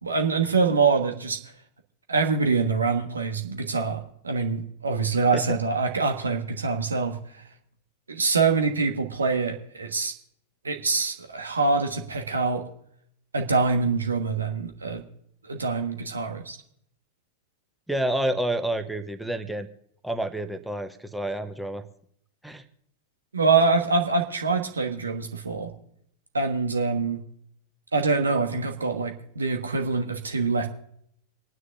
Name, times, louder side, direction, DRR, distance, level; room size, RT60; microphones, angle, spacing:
voice 1, 0.0-1.4 2.1-7.4 8.1-10.1 10.6-12.6 13.3-15.0 15.4-16.6 23.3-25.7 26.3-27.2 27.9-30.7, right 4 dB, 75° right, 4 dB, 1.5 m, -25 dB
voice 2, 17.9-19.7 20.0-21.8 22.4-22.6, right 1 dB, ahead, 8 dB, 1.0 m, -29 dB
27.5 x 9.6 x 2.6 m, 0.69 s
figure-of-eight pair, 90°, 0 cm